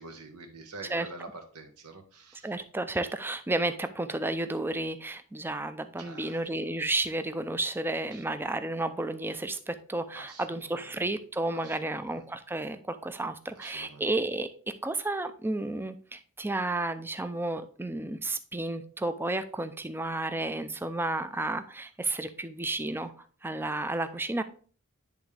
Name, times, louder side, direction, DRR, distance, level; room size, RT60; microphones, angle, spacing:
voice 1, 0.0-2.5 6.0-6.5 8.1-8.2 10.1-10.9 11.5-12.2 13.5-14.1, right 3 dB, 80° right, 4 dB, 1.2 m, -47 dB
voice 2, 2.4-23.1 23.4-24.4, right 2 dB, 10° right, 10 dB, 0.4 m, -32 dB
10.5 x 3.5 x 3.3 m, 0.42 s
head